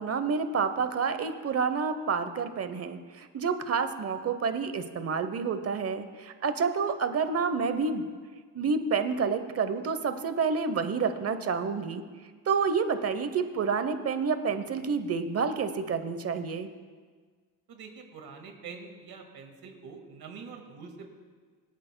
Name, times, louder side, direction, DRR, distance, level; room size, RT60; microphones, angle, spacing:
voice 1, 0.0-8.0 8.5-12.0 12.5-16.7, right 5 dB, 35° right, 10 dB, 0.8 m, -29 dB
voice 2, 17.7-21.1, right 5 dB, 55° right, 3 dB, 1.9 m, -45 dB
24.5 x 8.8 x 2.2 m, 1.5 s
cardioid pair, 115°, 43 cm